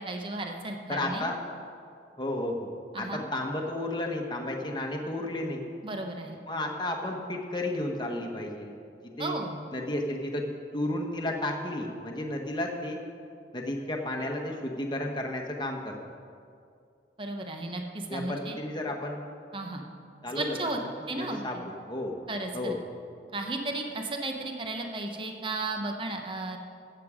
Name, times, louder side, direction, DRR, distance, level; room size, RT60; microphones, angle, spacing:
voice 1, 0.0-1.3 2.9-3.2 5.8-6.4 9.2-9.7 17.2-18.6 19.5-19.9 20.3-20.8 21.1-21.6 22.3-22.8 23.3-26.6, right 2 dB, 30° right, 3 dB, 0.9 m, -34 dB
voice 2, 0.9-1.4 2.2-2.7 3.0-5.6 6.5-8.7 9.2-9.3 9.7-10.4 10.7-13.0 13.5-16.0 18.1-19.2 20.2-20.6 21.2-21.6 21.9-22.2 22.5-22.7, left 1 dB, 25° left, 1 dB, 1.1 m, -32 dB
14.5 x 8.0 x 5.0 m, 2.4 s
head